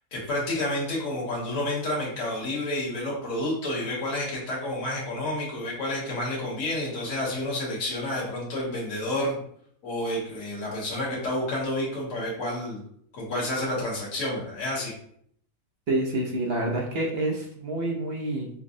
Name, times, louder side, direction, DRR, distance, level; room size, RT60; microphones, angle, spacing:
voice 1, 0.1-9.4 9.8-12.8 13.1-14.9, left 1 dB, 60° left, -4 dB, 1.5 m, -30 dB
voice 2, 15.9-18.5, right 1 dB, 55° right, 0 dB, 0.7 m, -28 dB
5.2 x 2.1 x 2.6 m, 0.65 s
omnidirectional pair, 1.5 m